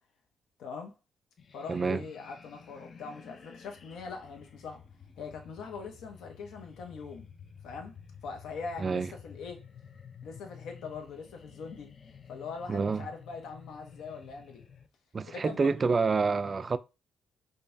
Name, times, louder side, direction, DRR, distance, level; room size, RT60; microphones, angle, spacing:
voice 1, 0.6-0.9 1.5-4.8 5.2-7.3 7.6-8.0 8.2-9.7 10.2-11.9 12.3-14.6 15.3-15.7, left 5 dB, 80° left, 0.9 m, -42 dB
sound 1, 1.4-14.9, left 6 dB, 45° left, 0.5 m, -52 dB
voice 2, 1.7-2.0 8.8-9.1 12.7-13.1 15.1-16.8, right 4 dB, 35° right, 0.3 m, -28 dB
5.2 x 2.3 x 2.6 m
cardioid pair, 90°, 0 cm